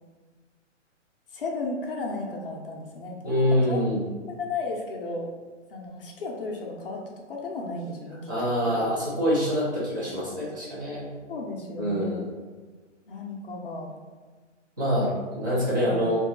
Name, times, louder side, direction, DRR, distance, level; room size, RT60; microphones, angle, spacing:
voice 1, 1.3-3.8 4.3-5.3 5.7-7.0 7.3-8.2 8.7-8.8 11.3-12.2 13.1-13.9 15.8-16.0, left 3 dB, 50° left, -1 dB, 0.6 m, -34 dB
voice 2, 3.2-4.1 8.3-11.1 11.8-12.2 14.8-16.2, equal, 15° right, -7 dB, 0.5 m, -25 dB
2.6 x 2.3 x 3.7 m, 1.4 s
hypercardioid pair, 165°, 37 cm